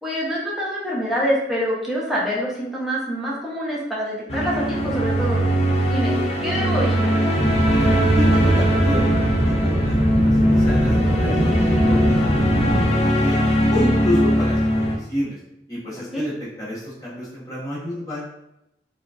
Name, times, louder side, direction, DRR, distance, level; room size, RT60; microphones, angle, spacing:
voice 1, 0.0-5.4 5.8-6.2 6.4-7.2 16.1-16.3, equal, ahead, -6 dB, 0.8 m, -26 dB
sound 1, 4.3-15.0, equal, 35° left, 0.4 m, -20 dB
sound 2, 7.3-12.9, right 1 dB, 40° right, 0.6 m, -22 dB
voice 2, 7.7-15.4 15.7-18.2, left 1 dB, 20° left, -9 dB, 1.4 m, -30 dB
4.2 x 2.5 x 2.4 m, 0.84 s
head